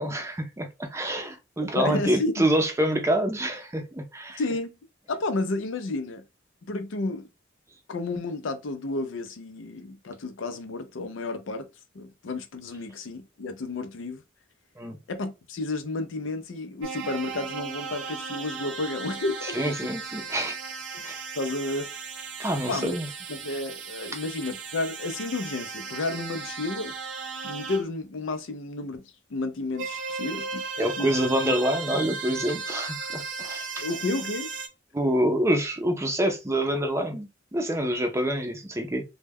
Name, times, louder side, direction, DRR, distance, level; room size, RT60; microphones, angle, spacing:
voice 1, 0.0-4.4 14.8-15.0 19.5-20.6 21.0-21.1 22.4-23.1 30.8-33.8 34.9-39.0, right 1 dB, 15° right, 0.5 m, -26 dB
voice 2, 1.7-2.5 4.4-4.7 5.1-6.2 6.7-7.3 7.9-11.7 11.9-14.2 15.1-19.7 21.4-21.9 22.7-23.0 23.3-26.9 27.4-30.6 31.0-31.1 31.5-31.6 33.8-34.5, left 2 dB, 85° left, 0.5 m, -31 dB
sound 1, 16.8-27.8 29.7-34.7, right 5 dB, 70° right, 0.5 m, -36 dB
2.2 x 2.1 x 3.4 m
head